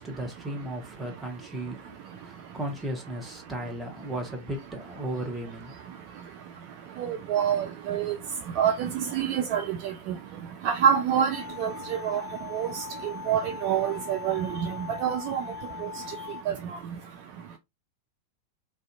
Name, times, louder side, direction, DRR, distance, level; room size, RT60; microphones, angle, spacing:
voice 1, 0.0-5.8, right 1 dB, 10° right, 0.9 m, -35 dB
voice 2, 7.0-8.2 8.6-9.8 10.1-10.2 10.6-12.2 12.5-15.4 15.8-15.9 16.5-16.6, right 8 dB, 45° right, 0.4 m, -27 dB
sound 1, 11.3-16.4, left 7 dB, 20° left, 1.2 m, -40 dB
2.5 x 2.2 x 2.5 m
figure-of-eight pair, 90°, 0 cm